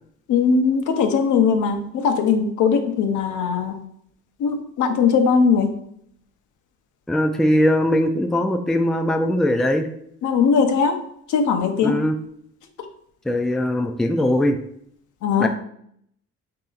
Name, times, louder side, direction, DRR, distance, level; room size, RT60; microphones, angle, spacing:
voice 1, 0.3-3.8 4.4-5.7 10.2-10.9 11.3-11.9 15.2-15.5, left 5 dB, 75° left, 6 dB, 0.7 m, -19 dB
voice 2, 7.1-9.9 11.8-12.2 13.2-14.6 15.4-15.5, left 1 dB, ahead, 5 dB, 0.3 m, -20 dB
4.1 x 2.8 x 3.8 m, 0.69 s
cardioid pair, 90°, 30 cm